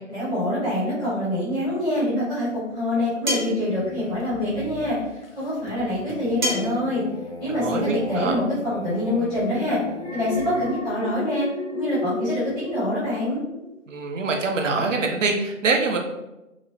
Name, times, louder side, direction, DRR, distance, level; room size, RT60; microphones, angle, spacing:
voice 1, 0.1-2.5 2.7-5.0 5.3-7.0 7.4-9.8 10.1-11.5 11.7-13.4, left 1 dB, 5° left, -14 dB, 0.6 m, -25 dB
sound 1, 3.3-3.6 6.4-6.8, left 1 dB, 40° right, 0.7 m, -26 dB
sound 2, 3.7-10.7, left 3 dB, 50° left, 0.4 m, -39 dB
voice 2, 7.5-8.4 13.9-16.0, right 3 dB, 75° right, 2 dB, 0.5 m, -24 dB
Alarm, 9.9-13.3 13.6-14.0, left 2 dB, 70° left, 0.8 m, -33 dB
2.9 x 2.0 x 2.7 m, 0.98 s
figure-of-eight pair, 140°, 39 cm